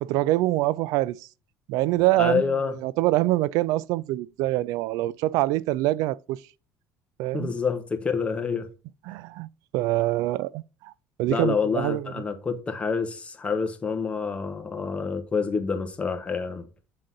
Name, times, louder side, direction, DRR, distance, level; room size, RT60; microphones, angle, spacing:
voice 1, 0.0-1.3 1.7-2.5 2.8-6.4 7.2-7.5 9.1-10.9 11.2-12.1, right 17 dB, 75° right, 0.3 m, -25 dB
voice 2, 2.2-2.8 7.3-8.7 11.3-16.6, left 5 dB, 20° left, 1.1 m, -27 dB
7.4 x 3.8 x 3.8 m
cardioid pair, 135°, 6 cm